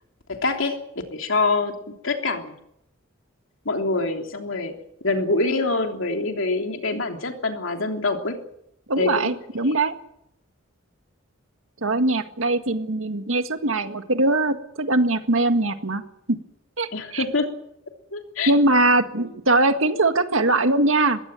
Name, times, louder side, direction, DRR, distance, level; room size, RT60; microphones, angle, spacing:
voice 1, 0.3-0.8 1.1-2.6 3.6-4.7 5.0-8.4 9.0-9.4 9.7-9.8 16.9-17.5 18.1-18.5, left 3 dB, 70° left, 4 dB, 3.3 m, -25 dB
voice 2, 8.9-9.9 11.8-16.0 16.3-16.4 16.8-17.2 18.5-21.2, right 2 dB, 80° right, 8 dB, 1.9 m, -21 dB
22.0 x 16.5 x 9.1 m, 0.78 s
head